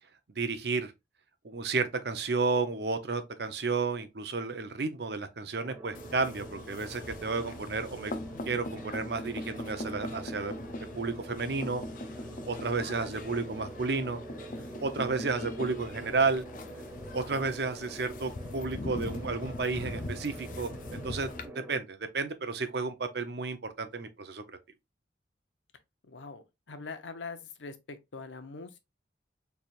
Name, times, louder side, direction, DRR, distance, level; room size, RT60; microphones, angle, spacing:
voice 1, 0.4-0.9 1.4-8.1 8.5-10.5 10.8-11.8 12.5-14.2 14.8-16.4 17.1-24.4, right 4 dB, 60° right, 0.6 m, -32 dB
sound 1, 5.6-21.8, right 1 dB, 10° right, 0.7 m, -46 dB
sound 2, 5.9-21.5, left 1 dB, 45° left, 0.5 m, -41 dB
voice 2, 26.1-28.8, left 4 dB, 85° left, 0.7 m, -43 dB
4.3 x 3.3 x 2.5 m
head